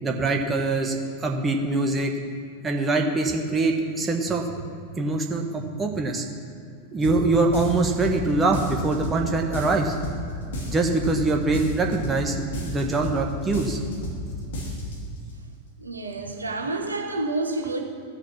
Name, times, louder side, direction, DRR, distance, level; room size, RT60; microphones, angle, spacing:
voice 1, 0.0-2.1 2.6-4.6 5.0-6.2 6.9-9.9 10.7-13.8, right 3 dB, 20° right, 1.2 m, -24 dB
sound 1, 7.0-7.2 7.5-8.2 8.5-9.2 9.5-10.2 10.5-11.2 11.5-12.2 12.5-13.2 13.5-14.2 14.5-15.0, equal, 60° left, 2.1 m, -32 dB
voice 2, 15.8-17.8, right 2 dB, 80° right, 1.0 m, -29 dB
14.0 x 6.5 x 5.9 m
figure-of-eight pair, 90°, 0 cm